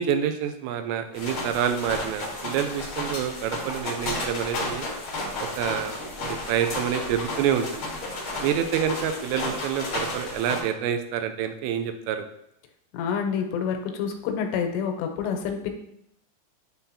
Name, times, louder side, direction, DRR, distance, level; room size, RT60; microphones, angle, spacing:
voice 1, 0.0-4.9 5.6-7.9 8.4-12.3, right 8 dB, 85° right, 8 dB, 2.8 m, -27 dB
sound 1, 1.1-10.6, left 2 dB, 70° left, 1.2 m, -33 dB
voice 2, 12.9-15.7, left 7 dB, 85° left, 4 dB, 2.9 m, -28 dB
9.9 x 3.9 x 2.8 m, 0.78 s
omnidirectional pair, 5.1 m